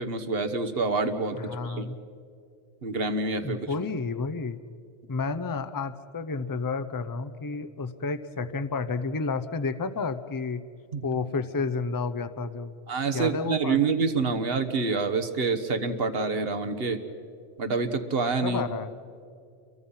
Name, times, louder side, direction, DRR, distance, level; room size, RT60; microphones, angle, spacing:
voice 1, 0.0-1.4 1.6-1.9 2.8-3.7 10.9-11.1 12.9-17.0 17.6-18.6, right 4 dB, 65° right, 7 dB, 1.5 m, -27 dB
voice 2, 1.3-2.0 3.4-4.6 5.1-10.6 11.0-12.7 13.1-13.8 18.4-18.9, left 4 dB, 25° left, 11 dB, 0.6 m, -31 dB
29.5 x 23.0 x 5.7 m, 2.4 s
omnidirectional pair, 1.1 m